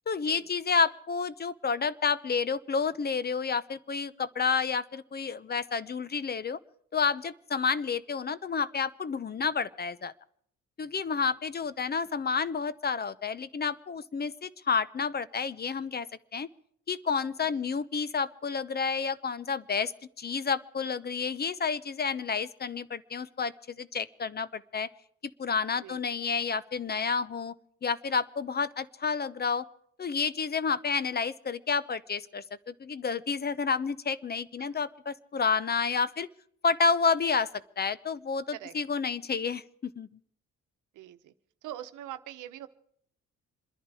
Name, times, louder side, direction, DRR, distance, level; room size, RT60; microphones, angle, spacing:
voice 1, 0.1-6.6 6.9-10.1 10.8-16.1 16.3-16.5 16.9-19.9 20.2-24.9 25.4-27.5 27.8-29.7 30.0-36.3 36.6-40.1, left 5 dB, 30° left, 17 dB, 0.8 m, -30 dB
voice 2, 17.4-17.8 25.8-26.0 34.6-34.8 38.5-38.7 40.9-41.3 41.6-42.7, right 12 dB, 85° right, 10 dB, 1.0 m, -43 dB
27.0 x 11.0 x 4.8 m, 0.65 s
cardioid pair, 90°, 30 cm